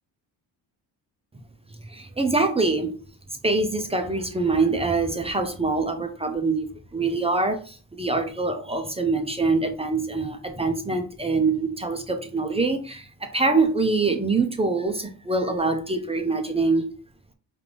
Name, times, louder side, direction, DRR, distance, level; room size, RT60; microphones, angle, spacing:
voice 1, 1.9-2.9 3.4-6.7 6.9-16.8, right 3 dB, 15° right, 5 dB, 0.4 m, -24 dB
5.1 x 2.4 x 3.2 m, 0.39 s
cardioid pair, 160°, 43 cm